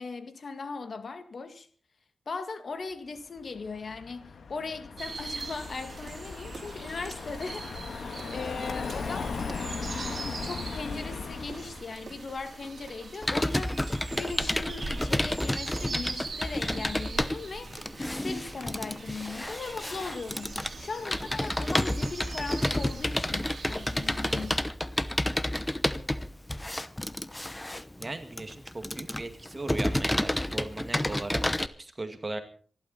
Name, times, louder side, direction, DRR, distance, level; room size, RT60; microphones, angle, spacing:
voice 1, 0.0-1.7 2.3-7.7 8.3-9.3 10.0-24.7, left 4 dB, 60° left, 1.9 m, -39 dB
Car passing by, 3.4-11.9, left 5 dB, 75° left, 1.6 m, -38 dB
sound 1, 5.0-24.6, right 4 dB, 50° right, 4.4 m, -42 dB
Computer keyboard, 13.2-31.7, left 1 dB, 15° left, 0.8 m, -30 dB
voice 2, 28.0-31.4 31.8-32.4, right 2 dB, 30° right, 2.1 m, -37 dB
26.5 x 12.0 x 4.2 m
wide cardioid pair, 90°, 0 cm